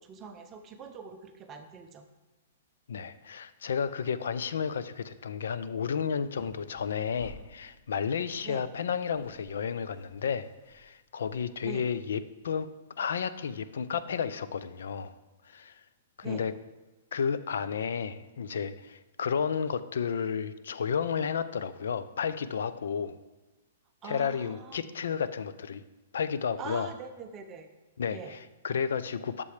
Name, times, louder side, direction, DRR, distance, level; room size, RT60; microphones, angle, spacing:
voice 1, 0.0-2.0 8.4-8.6 11.6-11.8 16.2-16.4 24.0-24.8 26.6-27.7 28.1-28.4, right 5 dB, 20° right, 6 dB, 0.6 m, -43 dB
voice 2, 2.9-12.7 13.0-15.1 15.4-15.8 16.2-16.5 17.1-23.2 24.0-25.8 26.1-26.9 28.0-29.4, left 6 dB, 80° left, 13 dB, 0.5 m, -32 dB
sound 1, 6.2-7.9 8.7-8.8 9.0-11.8, left 1 dB, 35° left, 3.0 m, -53 dB
11.5 x 6.8 x 3.3 m, 1.1 s
hypercardioid pair, 160°, 0 cm